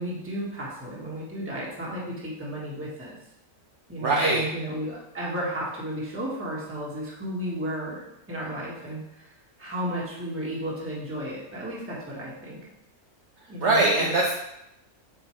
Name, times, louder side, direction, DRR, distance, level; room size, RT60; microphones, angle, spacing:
voice 1, 0.0-3.1 3.9-12.6 13.5-14.1, equal, 10° right, -6 dB, 1.5 m, -34 dB
voice 2, 4.0-4.5 13.6-14.3, right 2 dB, 60° right, -3 dB, 1.1 m, -22 dB
8.0 x 4.5 x 3.3 m, 0.83 s
omnidirectional pair, 1.5 m